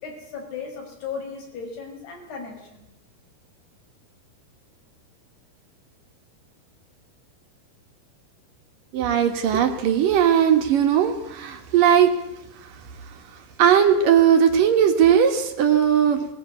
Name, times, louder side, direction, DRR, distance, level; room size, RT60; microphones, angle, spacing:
voice 1, 0.0-2.8, left 5 dB, 80° left, 2 dB, 7.4 m, -36 dB
voice 2, 8.9-12.1 13.6-16.3, right 8 dB, 65° right, 6 dB, 3.2 m, -18 dB
21.5 x 19.0 x 8.5 m, 0.84 s
omnidirectional pair, 4.5 m